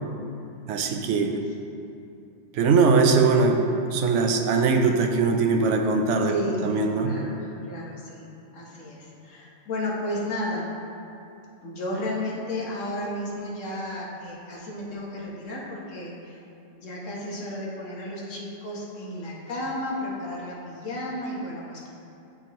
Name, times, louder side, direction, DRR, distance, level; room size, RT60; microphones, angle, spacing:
voice 1, 0.7-1.4 2.5-6.3 6.6-7.1, right 4 dB, 80° right, 4 dB, 0.9 m, -21 dB
voice 2, 6.2-8.3 8.5-10.7 11.6-16.4 16.7-21.9, left 1 dB, 90° left, -4 dB, 1.5 m, -33 dB
11.0 x 4.3 x 3.0 m, 2.7 s
omnidirectional pair, 1.3 m